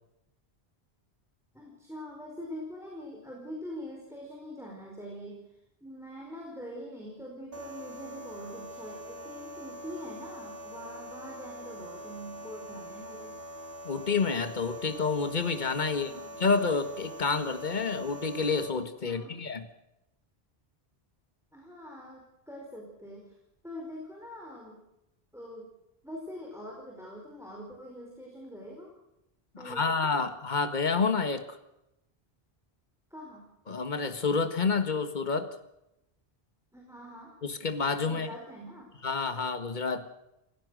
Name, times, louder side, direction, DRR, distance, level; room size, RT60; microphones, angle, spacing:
voice 1, 1.5-13.4 15.8-16.4 19.0-19.4 21.5-23.4 23.6-24.8 25.3-25.7 26.0-28.9 29.6-30.1 33.1-33.5 36.7-37.3 38.0-38.9, equal, 5° right, -1 dB, 4.9 m, -44 dB
sound 1, 7.5-18.7, right 1 dB, 65° right, 2.6 m, -44 dB
voice 2, 13.8-16.1 16.4-19.7 29.5-31.6 33.7-35.5 37.4-38.3 39.0-40.0, left 4 dB, 45° left, 9 dB, 1.8 m, -29 dB
28.5 x 16.5 x 6.5 m, 0.87 s
omnidirectional pair, 1.0 m